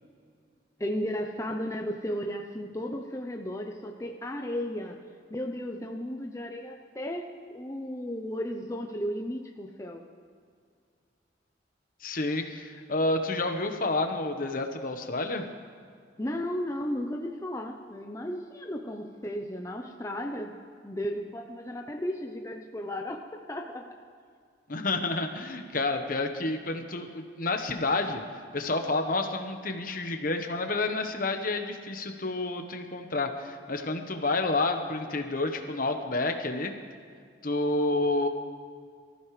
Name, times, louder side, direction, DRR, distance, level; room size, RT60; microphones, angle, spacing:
voice 1, 0.8-5.0 5.3-10.1 16.2-20.5 20.8-23.9, equal, 15° left, 2 dB, 0.7 m, -34 dB
voice 2, 12.0-15.4 24.7-36.7 37.4-38.3, left 2 dB, 50° left, 6 dB, 1.2 m, -29 dB
24.0 x 14.5 x 3.3 m, 2.2 s
head